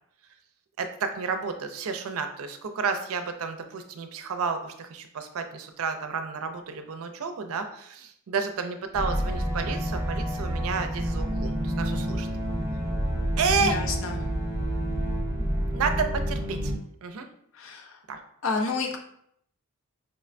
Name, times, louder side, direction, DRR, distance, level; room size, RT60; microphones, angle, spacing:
voice 1, 0.8-12.3 13.4-13.9 15.7-16.7 17.0-17.3 18.1-18.2, right 5 dB, 75° right, 7 dB, 0.4 m, -31 dB
sound 1, 8.9-16.7, equal, 15° right, 0.4 m, -29 dB
voice 2, 13.6-14.1 17.6-17.9 18.4-19.0, left 4 dB, 65° left, 3 dB, 0.6 m, -29 dB
5.1 x 2.1 x 2.5 m, 0.71 s
head